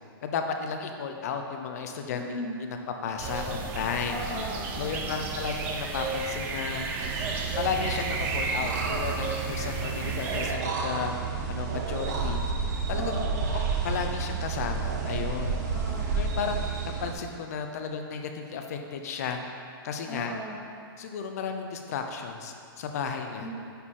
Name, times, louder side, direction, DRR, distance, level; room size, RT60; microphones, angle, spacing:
voice 1, 0.2-2.8 3.0-4.2 4.8-6.9 7.6-11.2 11.5-12.4 12.9-13.1 13.8-15.6 16.1-19.4 19.8-20.3 21.0-23.5, left 6 dB, 40° left, 4 dB, 0.6 m, -33 dB
voice 2, 2.1-2.5 4.0-5.3 12.9-13.3 15.7-16.1 20.0-20.6 23.4-23.6, equal, 15° left, -11 dB, 1.5 m, -37 dB
sound 1, 3.2-10.5, right 3 dB, 15° right, 0.3 m, -33 dB
sound 2, 7.0-17.1, right 5 dB, 45° right, 0.8 m, -31 dB
9.4 x 4.2 x 3.7 m, 2.4 s
hypercardioid pair, 165°, 13 cm